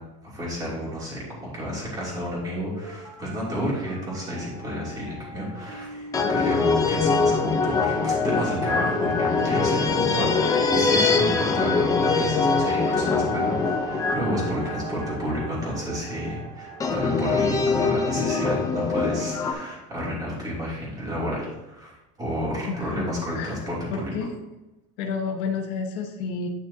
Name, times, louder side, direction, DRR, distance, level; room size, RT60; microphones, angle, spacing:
voice 1, 0.2-24.1, equal, 20° right, -6 dB, 3.0 m, -31 dB
Telephone, 1.9-9.9 10.4-10.5, right 1 dB, 60° right, 1.9 m, -42 dB
sound 1, 4.3-4.8 6.1-15.8 16.8-19.5, left 4 dB, 15° left, 0.7 m, -23 dB
sound 2, 7.1-18.1, right 7 dB, 80° right, 1.1 m, -39 dB
voice 2, 22.7-24.4 25.0-26.5, left 5 dB, 70° left, 4 dB, 1.2 m, -31 dB
9.9 x 6.2 x 2.8 m, 1.0 s
cardioid pair, 165°, 19 cm